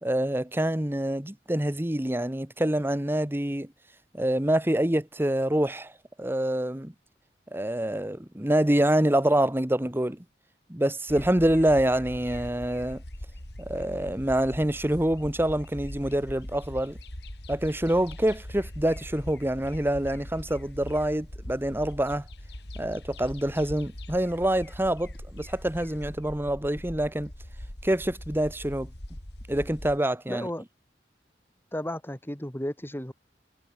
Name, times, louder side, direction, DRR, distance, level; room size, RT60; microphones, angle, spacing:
voice 1, 0.0-3.7 4.1-5.9 6.2-6.9 7.5-10.2 10.7-13.0 13.7-17.0 17.5-22.2 22.7-27.3 27.8-28.9 29.5-30.5, right 1 dB, 10° right, 1.3 m, -26 dB
sound 1, 11.1-30.0, left 1 dB, 65° left, 4.4 m, -41 dB
voice 2, 30.3-30.6 31.7-33.1, left 1 dB, 10° left, 2.2 m, -33 dB
head